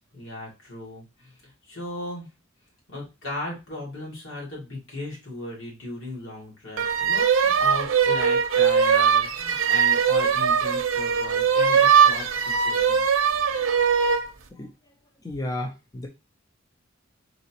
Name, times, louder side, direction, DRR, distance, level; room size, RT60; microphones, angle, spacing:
voice 1, 0.1-2.3 2.9-13.0, left 1 dB, 65° left, -3 dB, 2.2 m, -37 dB
sound 1, 6.8-14.3, right 7 dB, 80° right, 0.6 m, -21 dB
voice 2, 15.2-16.1, left 1 dB, 20° left, 2 dB, 0.5 m, -32 dB
4.0 x 3.4 x 2.8 m, 0.28 s
head